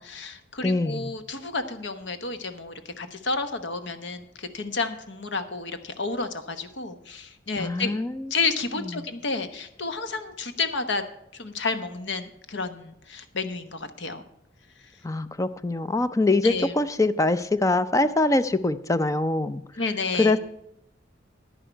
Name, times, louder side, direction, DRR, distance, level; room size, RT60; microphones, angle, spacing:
voice 1, 0.0-7.9 8.3-11.0 11.3-14.2 16.4-16.7 19.8-20.3, left 4 dB, 70° left, 9 dB, 1.1 m, -31 dB
voice 2, 0.6-1.1 7.6-8.3 8.8-8.9 15.0-19.6 20.2-20.4, left 2 dB, 15° left, 12 dB, 0.5 m, -23 dB
10.5 x 10.0 x 4.5 m, 0.79 s
head